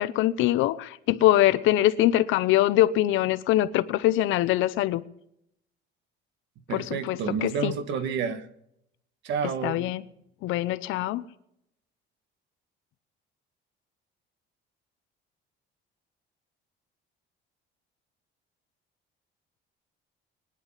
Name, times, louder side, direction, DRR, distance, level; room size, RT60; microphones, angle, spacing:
voice 1, 0.0-5.0 6.7-7.7 9.6-10.0 10.4-11.2, left 14 dB, 70° left, 0.9 m, -23 dB
voice 2, 6.7-8.5 9.2-9.9, right 6 dB, 60° right, 1.5 m, -30 dB
22.0 x 10.5 x 5.7 m
cardioid pair, 180°, 21 cm